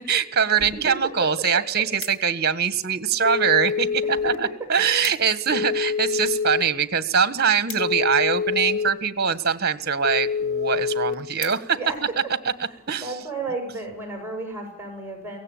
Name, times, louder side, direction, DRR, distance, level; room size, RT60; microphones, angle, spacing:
voice 1, 0.0-11.8 12.9-13.1, right 6 dB, 50° right, 13 dB, 1.5 m, -23 dB
sound 1, 1.6-2.6 3.3-3.8 4.1-4.2 4.5-4.6 4.8-5.4 5.8-8.6 9.4-9.7 10.2-10.3 10.6-10.7 11.0-12.0 12.5-12.7, left 6 dB, 90° left, 3.8 m, -42 dB
Telephone, 3.3-4.4 5.5-6.6 7.8-8.9 10.0-11.1, left 6 dB, 55° left, 2.7 m, -25 dB
voice 2, 13.0-15.4, right 3 dB, 10° right, 3 dB, 7.1 m, -32 dB
23.5 x 17.5 x 8.9 m, 0.75 s
head